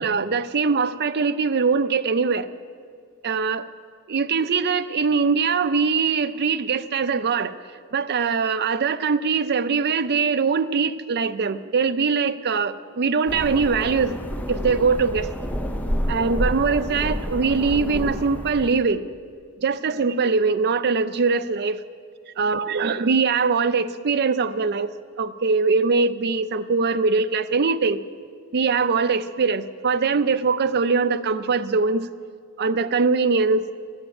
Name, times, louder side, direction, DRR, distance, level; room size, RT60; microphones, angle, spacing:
voice 1, 0.0-2.5 3.2-3.7 4.1-7.6 7.9-14.2 14.5-15.3 16.1-19.1 19.6-21.8 22.4-28.0 28.5-32.1 32.6-33.7, right 4 dB, 45° right, 11 dB, 0.5 m, -22 dB
sound 1, 13.3-18.8, equal, 5° left, 0.5 m, -29 dB
12.0 x 7.3 x 8.9 m, 2.1 s
head